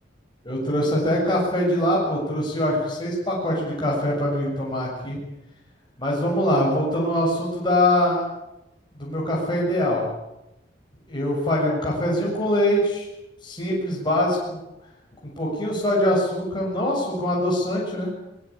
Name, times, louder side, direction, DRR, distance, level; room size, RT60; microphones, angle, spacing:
voice 1, 0.4-5.2 6.0-8.2 9.0-10.0 11.1-13.1 13.4-14.6 15.4-18.1, left 1 dB, 25° left, -4 dB, 7.3 m, -23 dB
23.0 x 21.5 x 8.7 m, 0.90 s
head